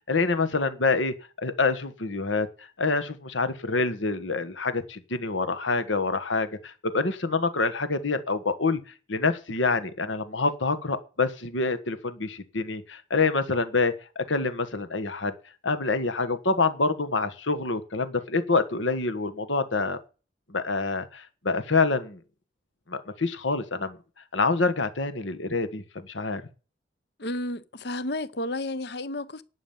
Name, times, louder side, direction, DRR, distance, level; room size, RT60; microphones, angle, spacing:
voice 1, 0.1-8.8 9.1-15.3 15.6-20.0 20.5-22.2 22.9-24.0 24.3-26.4, left 3 dB, 85° left, 1.5 m, -26 dB
voice 2, 27.2-29.4, left 1 dB, 60° left, 0.8 m, -32 dB
11.0 x 6.3 x 7.2 m
head